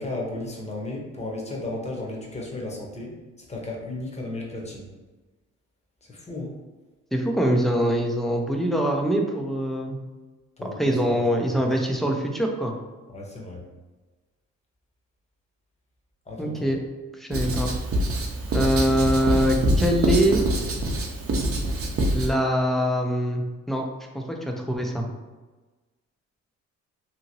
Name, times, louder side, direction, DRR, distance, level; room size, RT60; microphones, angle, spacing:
voice 1, 0.0-4.9 6.0-6.6 10.6-11.6 13.1-13.6 16.3-16.7, left 2 dB, 20° left, -1 dB, 0.8 m, -34 dB
voice 2, 7.1-10.0 10.6-12.7 16.4-16.8 17.2-17.7 18.5-20.4 22.1-23.8 24.1-25.1, equal, ahead, 1 dB, 0.4 m, -23 dB
Writing, 17.3-22.3, right 1 dB, 50° right, 0.6 m, -25 dB
2.8 x 2.7 x 2.7 m, 1.2 s
cardioid pair, 90°, 30 cm